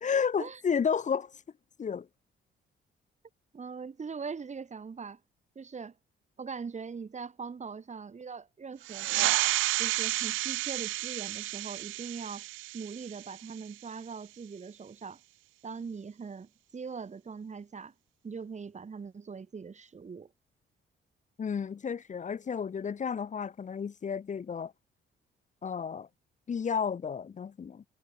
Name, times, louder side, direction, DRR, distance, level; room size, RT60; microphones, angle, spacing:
voice 1, 0.0-1.4 1.8-2.1 21.4-24.7 25.6-26.1 26.5-27.8, left 6 dB, 40° left, 1.1 m, -32 dB
voice 2, 3.5-5.2 5.6-5.9 6.4-9.4 9.8-12.5 12.7-15.2 15.6-17.9 18.2-20.3, right 5 dB, 35° right, 3.5 m, -41 dB
sound 1, 8.8-13.9, right 17 dB, 90° right, 0.7 m, -31 dB
cardioid pair, 90°, 20 cm